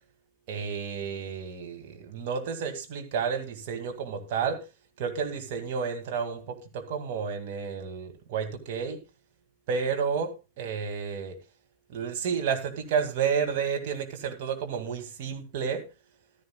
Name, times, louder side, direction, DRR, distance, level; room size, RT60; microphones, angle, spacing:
voice 1, 0.5-4.6 5.0-9.0 9.7-11.4 11.9-15.8, right 6 dB, 50° right, 4 dB, 2.3 m, -31 dB
14.5 x 13.0 x 2.4 m, 0.29 s
figure-of-eight pair, 90°, 0 cm